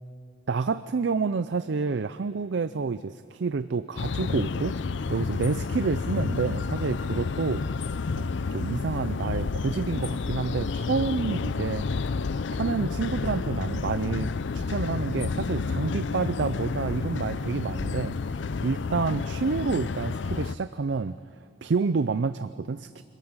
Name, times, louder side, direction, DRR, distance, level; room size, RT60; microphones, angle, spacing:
voice 1, 0.5-4.8 5.1-7.9 8.2-11.9 12.6-21.2 21.6-23.0, right 4 dB, 65° right, 13 dB, 0.4 m, -29 dB
sound 1, 4.0-20.5, left 4 dB, 70° left, 0.5 m, -30 dB
25.5 x 14.5 x 8.8 m, 2.7 s
head